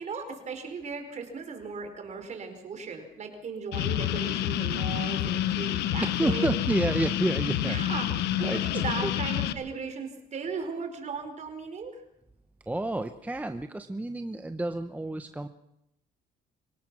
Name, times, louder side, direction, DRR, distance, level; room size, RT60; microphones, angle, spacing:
voice 1, 0.0-6.5 7.6-8.1 8.4-12.0, right 5 dB, 45° right, 6 dB, 4.5 m, -37 dB
sound 1, 3.7-9.5, left 12 dB, 85° left, 1.2 m, -28 dB
voice 2, 6.0-7.8 8.1-8.2 8.4-8.6 9.0-9.1 12.7-15.5, right 2 dB, 10° right, 8 dB, 0.9 m, -30 dB
25.5 x 17.5 x 6.1 m, 0.81 s
cardioid pair, 110°, 17 cm